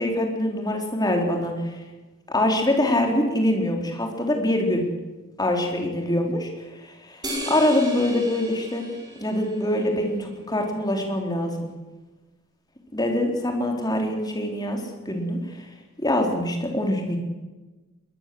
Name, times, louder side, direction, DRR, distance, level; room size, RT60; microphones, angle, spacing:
voice 1, 0.0-1.8 2.3-4.9 5.4-6.5 6.8-8.9 9.2-11.5 12.9-15.6 16.0-17.2, left 1 dB, 20° left, 2 dB, 4.2 m, -24 dB
sound 1, 7.2-9.9, right 1 dB, 20° right, 5.7 m, -35 dB
22.5 x 20.0 x 7.9 m, 1.2 s
head